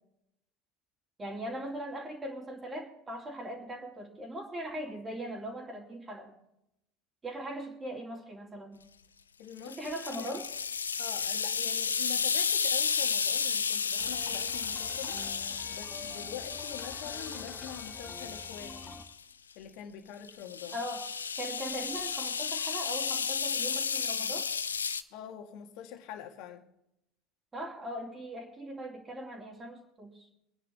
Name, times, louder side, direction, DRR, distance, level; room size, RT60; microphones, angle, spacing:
voice 1, 1.2-6.3 7.2-8.8 9.6-10.5 20.7-21.1 21.3-24.5 27.5-30.3, equal, 25° right, 3.3 m, -40 dB
voice 2, 9.4-10.3 11.0-19.0 19.6-20.8 25.1-26.7, left 10 dB, 55° left, 1.9 m, -45 dB
sound 1, 9.6-19.1 20.3-25.0, left 6 dB, 80° left, 0.5 m, -33 dB
sound 2, 14.0-19.0, left 4 dB, 20° left, 1.8 m, -47 dB
24.5 x 10.0 x 3.4 m
figure-of-eight pair, 70°, 0 cm